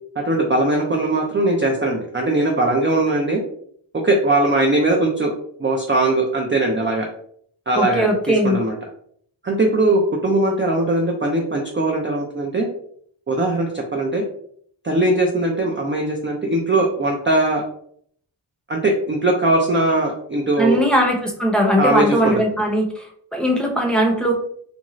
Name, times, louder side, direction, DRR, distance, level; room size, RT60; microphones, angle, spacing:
voice 1, 0.2-3.4 3.9-5.3 5.6-7.1 7.7-8.8 9.4-12.7 13.3-14.2 14.8-17.6 18.7-20.8 21.8-22.3, right 2 dB, 25° right, 0 dB, 0.4 m, -20 dB
voice 2, 7.7-8.6 20.6-24.3, equal, ahead, -1 dB, 0.7 m, -19 dB
2.6 x 2.4 x 3.0 m, 0.63 s
wide cardioid pair, 70°, 48 cm